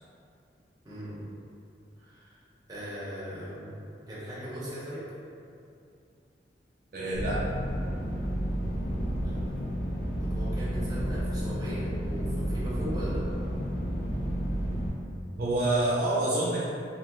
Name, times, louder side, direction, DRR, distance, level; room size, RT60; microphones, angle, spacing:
voice 1, 0.8-1.2 2.0-2.4 2.7-5.0 9.2-9.4 10.2-13.2, equal, 20° right, -10 dB, 0.9 m, -39 dB
voice 2, 6.9-7.4 15.4-16.6, right 2 dB, 55° right, -7 dB, 0.4 m, -27 dB
sound 1, 7.1-14.9, equal, 50° left, 0.6 m, -31 dB
3.0 x 2.5 x 3.0 m, 2.5 s
head